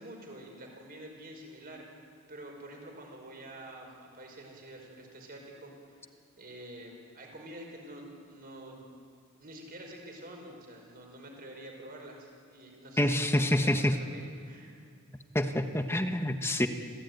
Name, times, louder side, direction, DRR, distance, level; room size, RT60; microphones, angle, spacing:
voice 1, 0.0-1.9 2.3-6.1 6.4-8.8 9.4-14.8, right 1 dB, 45° right, 1 dB, 5.1 m, -47 dB
voice 2, 13.0-14.0 15.3-16.7, left 1 dB, 10° left, 6 dB, 1.2 m, -27 dB
26.5 x 16.0 x 9.4 m, 2.2 s
head